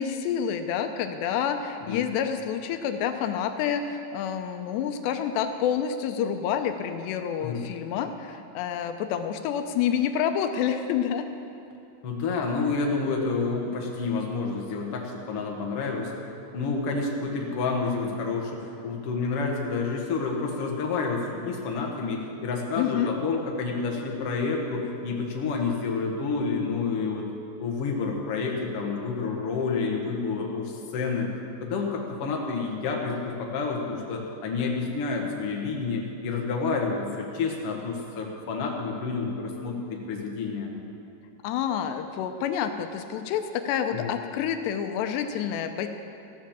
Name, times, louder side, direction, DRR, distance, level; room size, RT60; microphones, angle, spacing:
voice 1, 0.0-11.3 22.8-23.1 41.4-45.9, left 8 dB, 85° left, 7 dB, 2.8 m, -28 dB
voice 2, 12.0-16.1 16.5-27.3 27.6-31.3 31.6-40.7 43.9-44.1, left 4 dB, 50° left, 0 dB, 1.8 m, -29 dB
14.5 x 10.0 x 7.5 m, 2.8 s
omnidirectional pair, 5.0 m